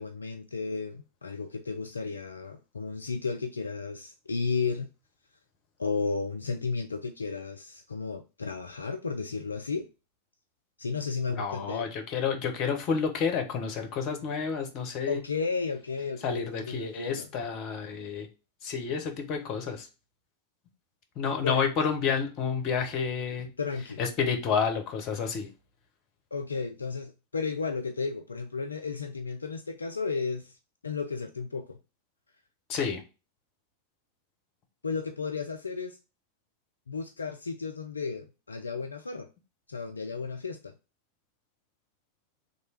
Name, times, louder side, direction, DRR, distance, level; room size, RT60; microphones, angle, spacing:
voice 1, 0.0-4.9 5.8-9.9 10.8-11.9 15.1-17.3 21.4-21.6 23.6-24.0 26.3-30.6 30.8-31.8 34.8-36.0 36.9-39.3 39.7-40.7, left 4 dB, 75° left, 0.3 m, -33 dB
voice 2, 11.3-15.2 16.2-18.3 18.6-19.9 21.2-23.5 24.0-25.5 32.7-33.0, left 6 dB, 35° left, 0.9 m, -30 dB
3.2 x 2.7 x 4.2 m
figure-of-eight pair, 90°, 0 cm